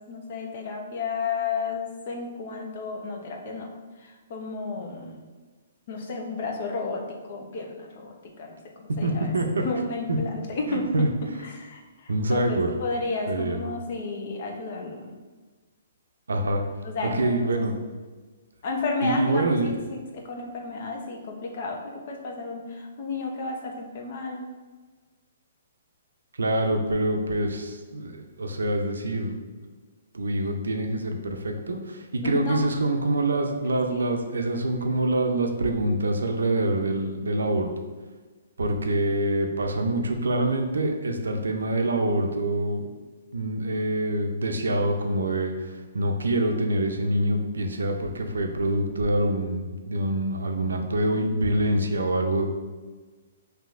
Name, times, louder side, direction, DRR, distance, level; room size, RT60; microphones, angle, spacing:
voice 1, 0.1-3.7 4.0-5.2 5.9-9.3 9.6-10.9 11.4-15.1 16.8-17.3 18.6-24.4 32.2-32.6 33.9-34.0, left 3 dB, 50° left, 1 dB, 0.8 m, -32 dB
voice 2, 9.0-9.6 10.7-11.1 12.1-12.7 13.3-13.6 16.3-16.6 17.0-17.7 19.0-19.7 26.4-29.4 30.1-37.7 38.6-42.9 43.3-52.5, right 1 dB, 90° right, 4 dB, 0.5 m, -25 dB
5.7 x 2.7 x 2.5 m, 1.4 s
hypercardioid pair, 145°, 0 cm